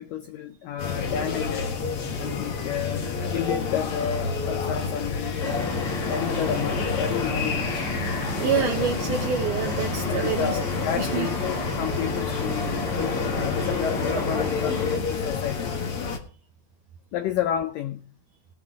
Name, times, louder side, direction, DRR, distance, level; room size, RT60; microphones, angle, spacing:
voice 1, 0.0-1.7 2.2-5.8 6.1-7.8 8.3-8.8 10.1-12.9 13.3-15.7 17.1-18.1, left 9 dB, 85° left, 1.9 m, -31 dB
sound 1, 0.8-16.2, left 5 dB, 65° left, 1.3 m, -29 dB
sound 2, 5.4-15.0, left 1 dB, 25° left, 2.1 m, -32 dB
voice 2, 8.4-10.6 11.0-11.3, right 7 dB, 75° right, 1.9 m, -27 dB
18.5 x 8.0 x 3.6 m
omnidirectional pair, 4.9 m